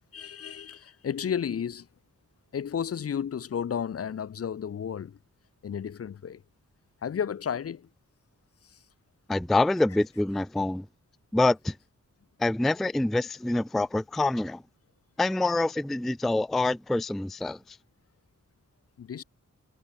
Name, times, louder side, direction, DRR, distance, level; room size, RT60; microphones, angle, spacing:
voice 1, 0.1-1.9 2.5-5.2 5.6-6.4 7.0-7.9 8.6-8.8 19.0-19.2, left 8 dB, 50° left, 0.6 m, -32 dB
voice 2, 9.3-10.9 11.3-11.7 12.4-14.6 15.2-17.6, left 2 dB, ahead, 0.3 m, -26 dB
wide cardioid pair, 120°, 30 cm